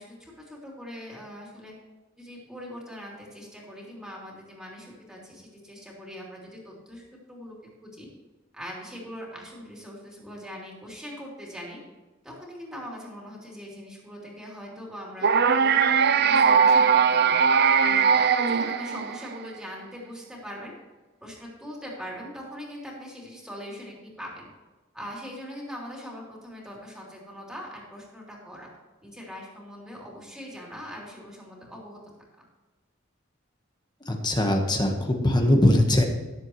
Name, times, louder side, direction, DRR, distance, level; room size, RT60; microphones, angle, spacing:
voice 1, 0.0-1.7 2.2-7.6 7.8-8.1 8.5-11.8 12.2-15.3 16.2-17.3 17.8-20.7 21.2-24.5 24.9-28.7 29.0-32.0, equal, 5° right, -3 dB, 3.3 m, -41 dB
sound 1, 15.2-19.4, right 6 dB, 50° right, 0.5 m, -20 dB
voice 2, 34.1-36.0, left 1 dB, 20° left, 3 dB, 1.3 m, -21 dB
18.0 x 7.8 x 3.1 m, 1.2 s
head